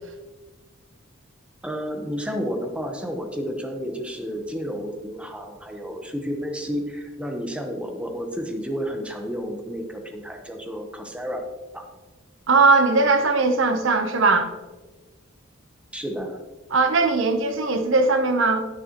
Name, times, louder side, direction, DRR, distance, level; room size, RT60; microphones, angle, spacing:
voice 1, 1.6-11.4 11.7-11.8 15.9-16.4, equal, 5° right, 3 dB, 1.0 m, -31 dB
voice 2, 12.5-14.5 16.7-18.6, right 3 dB, 70° right, 7 dB, 0.9 m, -19 dB
10.0 x 10.0 x 3.0 m, 1.2 s
head